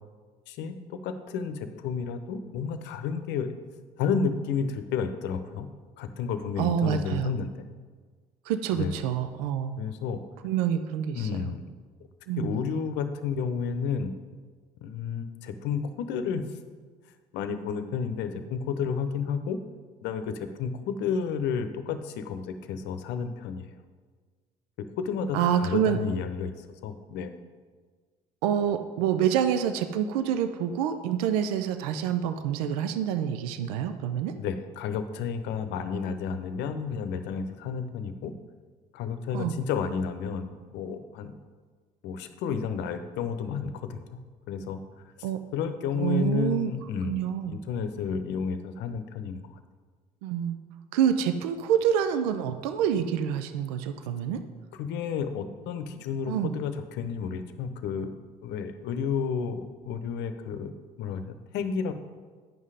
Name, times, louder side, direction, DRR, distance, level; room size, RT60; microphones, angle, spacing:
voice 1, 0.5-3.5 4.0-5.7 6.0-7.7 8.7-9.0 9.8-10.2 11.1-11.6 12.4-14.1 14.8-16.5 17.3-19.6 20.0-23.7 24.8-27.3 34.4-38.3 38.9-41.3 42.0-44.2 44.5-44.8 45.5-49.6 54.7-58.1 58.4-61.9, left 6 dB, 70° left, 9 dB, 0.8 m, -31 dB
voice 2, 6.6-7.3 8.5-9.8 10.4-11.5 12.3-12.5 25.3-26.0 28.4-34.3 39.3-39.6 45.2-45.4 45.9-46.7 47.1-47.5 50.2-50.6 50.9-54.4 56.3-56.5, right 9 dB, 80° right, 9 dB, 0.5 m, -27 dB
9.3 x 5.6 x 4.9 m, 1.5 s
hypercardioid pair, 60°, 19 cm